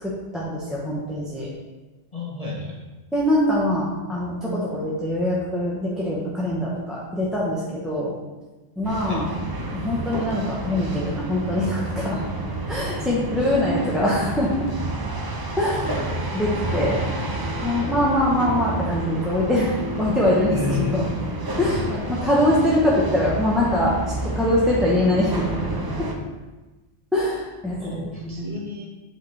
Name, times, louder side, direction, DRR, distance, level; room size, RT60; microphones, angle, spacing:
voice 1, 0.0-1.5 3.1-8.1 8.8-9.3 9.7-12.2 12.7-14.5 15.6-15.9 16.3-17.0 17.6-21.0 21.6-23.9 24.2-25.7 26.0-26.1 27.1-28.5, left 1 dB, ahead, -7 dB, 0.8 m, -23 dB
voice 2, 2.1-2.8 9.1-9.2 15.7-15.8 16.2-16.3 20.5-21.3 21.6-21.9 27.8-28.9, left 4 dB, 40° left, -5 dB, 0.9 m, -31 dB
sound 1, 8.8-26.1, right 2 dB, 30° right, 0.5 m, -29 dB
7.1 x 4.0 x 3.3 m, 1.2 s
omnidirectional pair, 1.0 m